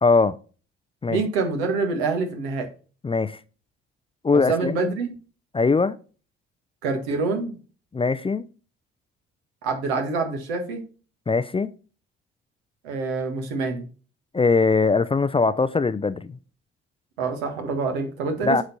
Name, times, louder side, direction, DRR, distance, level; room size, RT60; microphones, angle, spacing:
voice 1, 0.0-0.4 1.0-1.2 3.0-3.4 4.2-4.9 5.5-5.9 7.9-8.4 11.3-11.7 14.3-16.4 18.4-18.6, left 4 dB, 20° left, 0.5 m, -21 dB
voice 2, 1.1-2.7 4.3-5.1 6.8-7.5 9.6-10.8 12.8-13.9 17.2-18.6, right 4 dB, 75° right, 1.6 m, -26 dB
8.0 x 5.1 x 4.2 m
hypercardioid pair, 50°, 31 cm